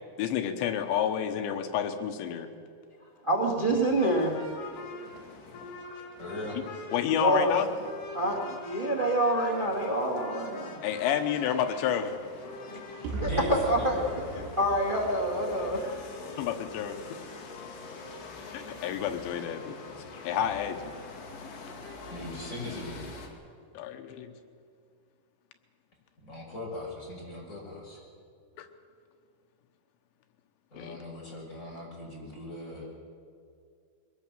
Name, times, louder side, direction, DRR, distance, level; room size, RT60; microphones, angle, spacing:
voice 1, 0.2-2.5 6.9-7.7 10.8-12.1 16.4-17.0 18.5-19.8 20.2-20.9 23.7-24.3 28.6-28.7 30.7-31.0, left 9 dB, 90° left, 7 dB, 3.4 m, -29 dB
voice 2, 3.2-4.4 7.1-7.6 8.1-10.8 12.7-14.0 14.3-15.8, right 1 dB, 45° right, 1 dB, 0.6 m, -27 dB
sound 1, 4.0-23.3, left 4 dB, 65° left, 4.3 m, -44 dB
voice 3, 6.2-6.6 13.0-14.6 22.1-23.0 26.2-28.0 30.7-32.9, left 1 dB, 15° left, -3 dB, 6.0 m, -39 dB
sound 2, 13.0-16.9, right 3 dB, 75° right, 2.4 m, -39 dB
22.5 x 18.0 x 7.5 m, 2.3 s
omnidirectional pair, 5.0 m